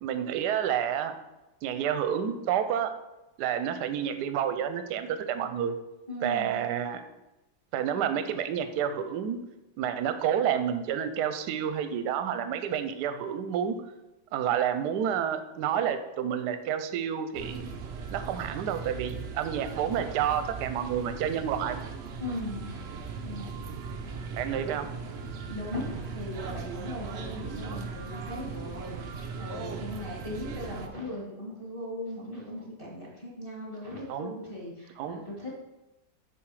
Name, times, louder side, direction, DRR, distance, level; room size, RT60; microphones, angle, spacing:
voice 1, 0.0-1.1 1.6-2.9 3.4-5.7 6.2-7.0 7.7-9.4 9.8-13.8 14.3-17.7 18.1-21.9 24.3-24.9 34.1-34.4 35.0-35.2, right 9 dB, 70° right, 9 dB, 1.1 m, -29 dB
voice 2, 6.1-6.5 22.2-22.8 23.2-24.3 25.5-29.0 29.4-35.5, left 1 dB, 15° left, -4 dB, 1.5 m, -38 dB
sound 1, 17.3-30.9, right 5 dB, 85° right, 0.5 m, -38 dB
7.0 x 4.9 x 4.8 m, 0.99 s
omnidirectional pair, 2.1 m